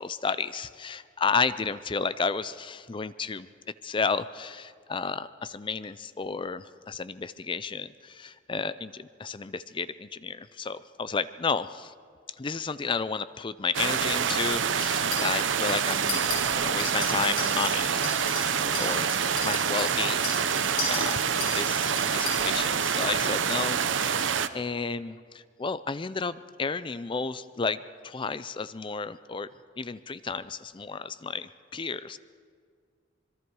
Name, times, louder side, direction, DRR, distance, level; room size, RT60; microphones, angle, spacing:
voice 1, 0.0-3.5 3.8-11.9 12.4-16.2 16.5-20.5 20.9-23.8 24.0-29.5 29.8-32.2, left 5 dB, 25° left, 15 dB, 0.4 m, -32 dB
sound 1, 13.7-24.5, right 7 dB, 90° right, 0.8 m, -26 dB
Chink clink, 14.8-15.4 15.7-16.4 16.8-22.5, left 4 dB, 50° left, 7.7 m, -35 dB
26.0 x 22.5 x 4.7 m, 2.1 s
head